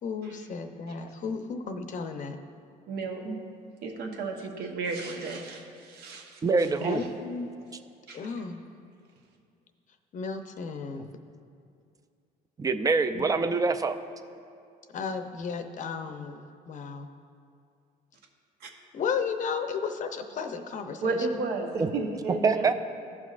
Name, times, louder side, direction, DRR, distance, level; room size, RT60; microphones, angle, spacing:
voice 1, 0.0-2.4 6.8-7.5 8.1-8.6 10.1-11.1 13.1-13.4 14.9-17.1 18.9-21.2, left 5 dB, 50° left, 7 dB, 0.7 m, -34 dB
voice 2, 2.9-3.4 3.8-7.0 8.1-8.2 18.6-18.7 21.0-22.7, right 3 dB, 70° right, 2 dB, 1.1 m, -33 dB
voice 3, 6.4-7.0 12.6-14.0 21.8-21.9 22.4-22.7, right 4 dB, 20° right, 9 dB, 0.4 m, -25 dB
15.5 x 6.0 x 2.5 m, 2.4 s
cardioid pair, 110°, 17 cm